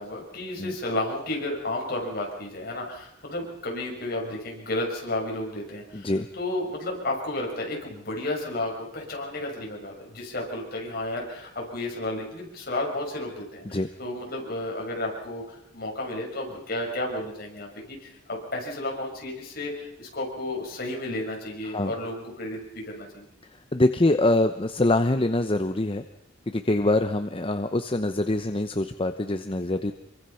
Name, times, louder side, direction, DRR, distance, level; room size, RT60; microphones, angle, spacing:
voice 1, 0.0-23.3, left 1 dB, 55° left, -1 dB, 6.6 m, -32 dB
voice 2, 5.9-6.3 13.7-13.9 21.7-21.9 23.7-26.0 26.5-29.9, left 2 dB, 30° left, 8 dB, 0.9 m, -24 dB
26.5 x 23.5 x 5.8 m, 0.80 s
head